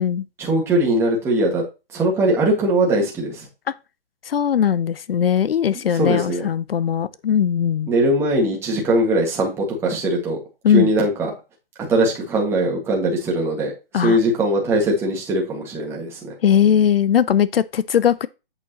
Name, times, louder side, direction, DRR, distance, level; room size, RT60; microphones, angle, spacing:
voice 1, 0.4-1.6 1.9-3.5 5.7-6.4 7.9-10.4 10.7-11.3 11.8-16.3, right 1 dB, 10° right, 1.7 m, -21 dB
voice 2, 4.3-7.9 10.6-10.9 13.9-14.2 16.4-18.3, left 9 dB, 75° left, 0.6 m, -19 dB
8.3 x 7.0 x 2.9 m
hypercardioid pair, 160°, 29 cm